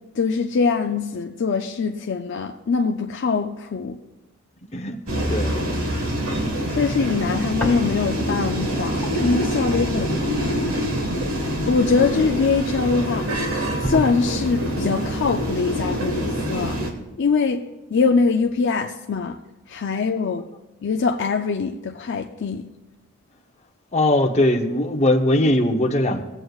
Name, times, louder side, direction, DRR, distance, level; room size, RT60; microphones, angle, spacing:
voice 1, 0.2-4.0 6.8-10.8 11.7-13.3 13.8-16.8 17.2-17.6 17.9-19.4 19.7-20.5 20.8-22.7, left 4 dB, 55° left, 4 dB, 0.4 m, -23 dB
sound 1, 5.1-16.9, equal, 80° right, 1.5 m, -25 dB
voice 2, 5.3-5.6 23.9-26.2, left 1 dB, 30° left, 3 dB, 0.8 m, -20 dB
sound 2, 7.6-8.3 8.7-12.6 13.2-13.3 13.8-14.7, equal, 5° left, 1.8 m, -34 dB
19.0 x 7.8 x 2.4 m, 1.0 s
head